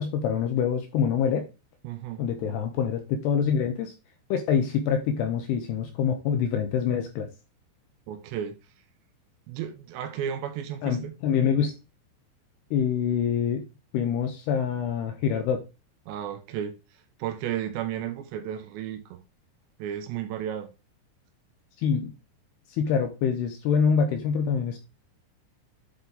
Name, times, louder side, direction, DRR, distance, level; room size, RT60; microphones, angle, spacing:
voice 1, 0.0-1.5 2.2-3.9 4.3-7.3 10.8-11.7 12.7-13.7 13.9-15.6 21.8-22.1 22.7-24.8, left 7 dB, 80° left, 2.4 m, -25 dB
voice 2, 1.8-2.2 8.1-8.6 9.5-11.1 16.1-19.2 19.8-20.7, right 10 dB, 80° right, 2.7 m, -33 dB
9.8 x 3.8 x 4.0 m
omnidirectional pair, 5.4 m